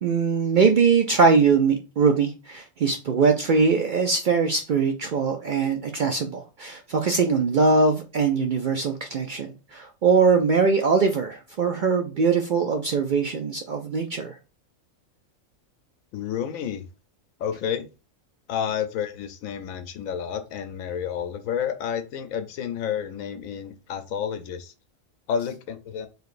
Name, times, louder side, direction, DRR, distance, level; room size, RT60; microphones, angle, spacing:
voice 1, 0.0-14.3, right 5 dB, 70° right, 4 dB, 0.4 m, -22 dB
voice 2, 16.1-16.9 17.4-17.9 18.5-24.7 25.3-26.1, left 8 dB, 90° left, 9 dB, 1.0 m, -30 dB
4.7 x 3.2 x 2.5 m, 0.30 s
omnidirectional pair, 1.4 m